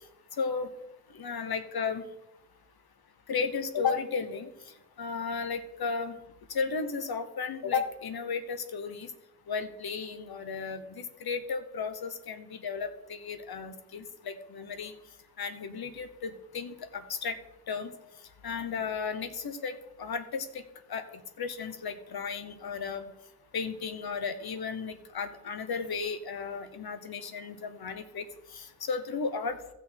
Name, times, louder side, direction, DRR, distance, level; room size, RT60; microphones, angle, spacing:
voice 1, 0.4-0.7 1.1-2.1 3.3-4.5 5.0-6.2 6.5-9.1 9.5-14.9 15.4-17.4 17.7-17.9 18.4-20.6 20.9-21.0 21.4-23.1 23.5-28.2 28.5-29.6, left 5 dB, 85° left, 10 dB, 1.1 m, -34 dB
15.0 x 6.4 x 4.4 m, 0.90 s
wide cardioid pair, 75°, 36 cm